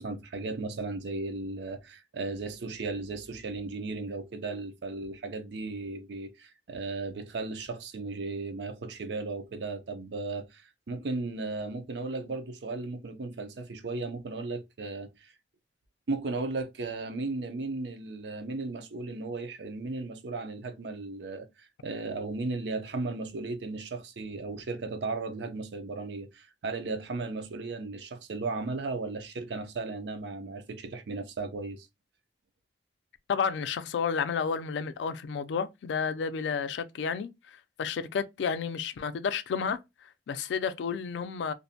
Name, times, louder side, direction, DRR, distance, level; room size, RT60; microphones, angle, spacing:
voice 1, 0.0-15.3 16.1-31.9, right 3 dB, 75° right, 0.5 m, -36 dB
voice 2, 33.3-41.5, left 6 dB, 90° left, 0.3 m, -31 dB
2.5 x 2.1 x 2.6 m
head